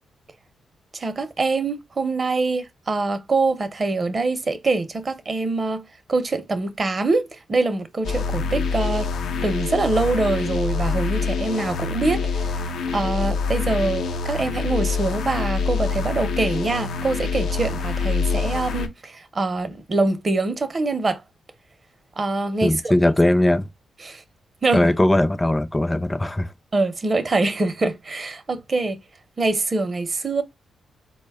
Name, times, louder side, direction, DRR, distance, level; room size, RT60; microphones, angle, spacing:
voice 1, 0.9-9.1 9.4-12.6 12.9-21.2 22.2-23.1 24.0-24.2 24.6-24.9 26.7-29.0 29.4-30.4, right 3 dB, 40° right, 0.7 m, -24 dB
sound 1, 8.0-18.9, left 5 dB, 85° left, 0.6 m, -25 dB
voice 2, 22.6-23.7 24.7-26.5, left 1 dB, 15° left, 0.5 m, -19 dB
3.9 x 2.2 x 3.4 m
cardioid pair, 80°, 0 cm